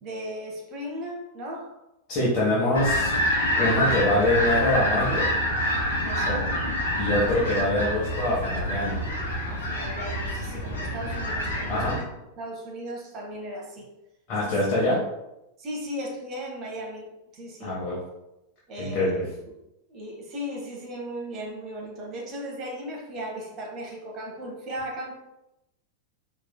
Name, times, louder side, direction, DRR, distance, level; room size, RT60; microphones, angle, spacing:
voice 1, 0.0-1.8 3.0-3.3 6.0-6.4 9.5-12.1 12.4-13.9 14.4-14.6 15.6-17.8 18.7-19.2 19.9-25.2, equal, 35° right, -2 dB, 0.9 m, -36 dB
voice 2, 2.1-3.2 3.6-5.3 6.3-6.4 7.0-9.0 11.7-11.9 14.3-15.0 17.6-18.0 18.8-19.2, left 1 dB, 35° left, -6 dB, 1.2 m, -24 dB
sound 1, 2.7-12.0, equal, 70° left, 1.0 m, -27 dB
4.7 x 3.1 x 2.2 m, 0.91 s
figure-of-eight pair, 90°, 0 cm